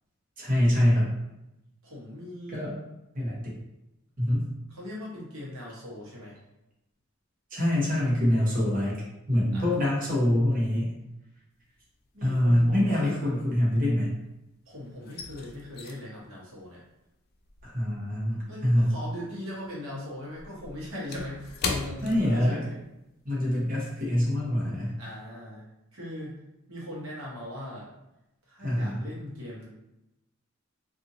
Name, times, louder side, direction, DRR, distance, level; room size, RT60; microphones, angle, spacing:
voice 1, 0.4-1.1 2.5-2.7 3.1-3.5 4.2-4.4 7.5-9.0 9.3-10.9 12.2-14.1 17.6-18.9 22.0-22.6 23.2-25.0 28.6-29.0, left 1 dB, 40° right, -5 dB, 1.0 m, -25 dB
voice 2, 1.8-2.6 4.7-6.4 9.5-10.1 12.1-13.4 14.7-16.8 18.5-22.8 25.0-25.6 25.9-26.3 26.7-27.9 28.5-29.7, left 1 dB, 70° right, -5 dB, 1.1 m, -39 dB
sound 1, 11.6-12.1 12.4-14.4 14.7-19.4 19.6-23.0 23.3-23.5 23.9-24.2, left 4 dB, 45° left, 0.3 m, -39 dB
2.7 x 2.6 x 2.6 m, 0.90 s
head